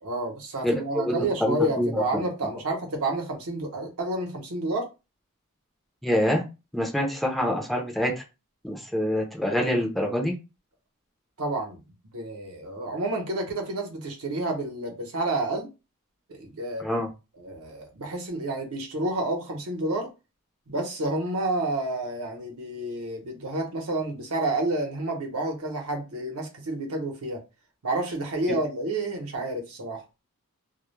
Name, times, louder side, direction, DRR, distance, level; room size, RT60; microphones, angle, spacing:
voice 1, 0.0-4.9 11.4-11.8 12.1-15.7 16.3-16.9 17.4-20.1 20.7-27.4 27.8-30.0, right 2 dB, 70° right, 0.8 m, -29 dB
voice 2, 0.6-2.2 6.0-6.4 6.7-8.1 8.6-10.3 16.8-17.1, equal, ahead, 0.5 m, -26 dB
2.2 x 2.0 x 3.0 m
head